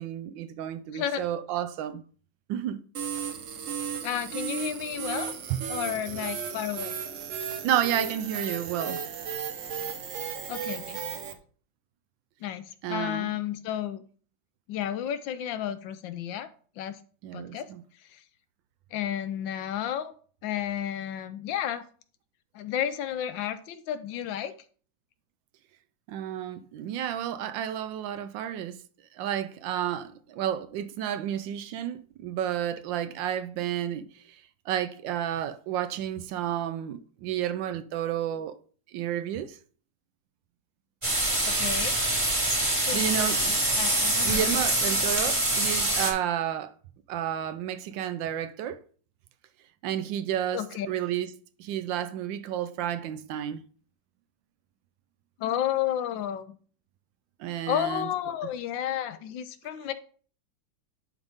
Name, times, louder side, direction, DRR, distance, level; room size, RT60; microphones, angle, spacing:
voice 1, 0.0-2.0 2.5-2.8 5.5-5.6 7.6-9.0 12.8-13.3 17.2-17.8 26.1-28.8 29.2-34.0 34.7-38.5 38.9-39.6 42.9-43.5 44.2-46.7 47.1-48.8 49.8-51.3 51.6-53.6 57.4-58.1, right 10 dB, 75° right, 1.2 m, -31 dB
sound 1, 2.9-11.3, right 7 dB, 60° right, 0.8 m, -35 dB
voice 2, 4.0-5.4 5.7-6.9 10.5-11.0 12.4-14.0 14.7-16.5 16.8-17.0 17.3-17.7 18.9-20.1 20.4-21.8 22.5-24.5 41.5-42.0 42.9-44.6 50.5-50.9 55.4-56.6 57.7-59.9, left 10 dB, 75° left, 1.3 m, -32 dB
sound 2, 41.0-46.1, right 1 dB, 20° right, 1.0 m, -25 dB
10.5 x 4.0 x 3.5 m
omnidirectional pair, 2.2 m